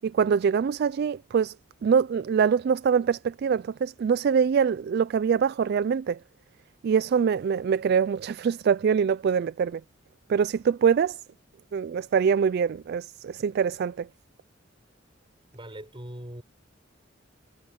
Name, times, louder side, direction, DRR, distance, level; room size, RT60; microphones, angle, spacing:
voice 1, 0.0-1.6 1.8-6.2 6.8-9.8 10.3-11.2 11.7-14.1, right 6 dB, 55° right, 0.3 m, -24 dB
voice 2, 15.5-16.4, right 1 dB, 25° right, 6.9 m, -40 dB
head